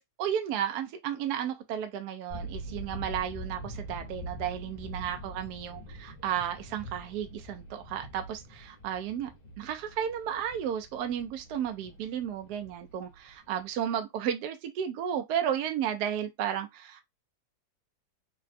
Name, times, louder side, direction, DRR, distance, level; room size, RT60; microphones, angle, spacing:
voice 1, 0.2-9.3 9.6-17.0, right 9 dB, 75° right, 0.9 m, -33 dB
sound 1, 2.3-13.8, right 1 dB, 35° left, 0.7 m, -44 dB
3.6 x 2.2 x 2.4 m
omnidirectional pair, 2.1 m